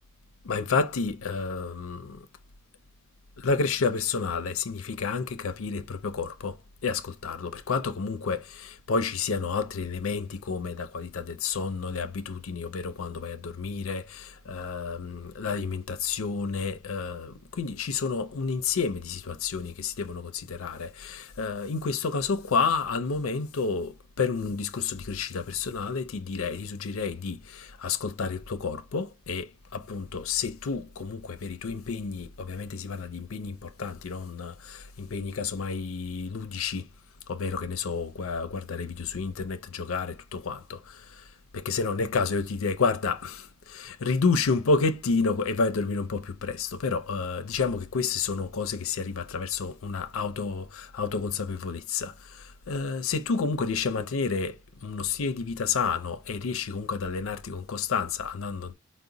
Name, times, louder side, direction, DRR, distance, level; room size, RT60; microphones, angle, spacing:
voice 1, 0.4-2.2 3.4-6.6 6.8-36.8 37.3-41.3 41.5-58.7, left 4 dB, 85° left, 0.5 m, -30 dB
4.9 x 2.1 x 3.9 m
head